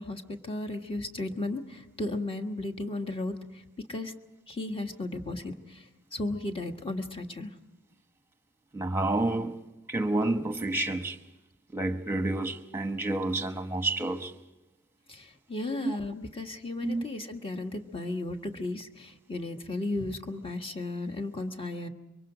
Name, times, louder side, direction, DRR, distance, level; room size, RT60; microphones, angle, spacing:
voice 1, 0.0-3.4 3.9-4.1 4.5-7.5 15.1-21.9, left 2 dB, 25° left, 1.5 m, -35 dB
voice 2, 8.7-9.6 9.9-11.2 11.7-14.3 15.8-16.0 16.8-17.0, right 2 dB, 10° right, 1.2 m, -29 dB
25.5 x 24.0 x 5.0 m
head